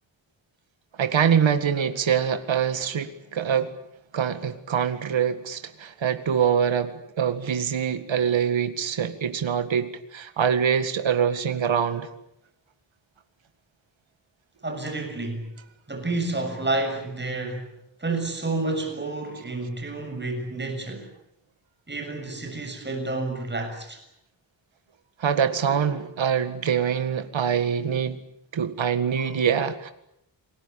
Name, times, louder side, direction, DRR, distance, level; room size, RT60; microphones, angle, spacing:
voice 1, 1.0-3.7 4.1-12.1 25.2-28.2 28.5-29.9, right 7 dB, 85° right, 9 dB, 2.0 m, -24 dB
voice 2, 14.6-15.5 15.9-17.7 18.0-21.1 21.9-24.0, right 2 dB, 25° right, 4 dB, 7.1 m, -30 dB
29.0 x 21.5 x 8.8 m, 0.77 s
wide cardioid pair, 155°, 45 cm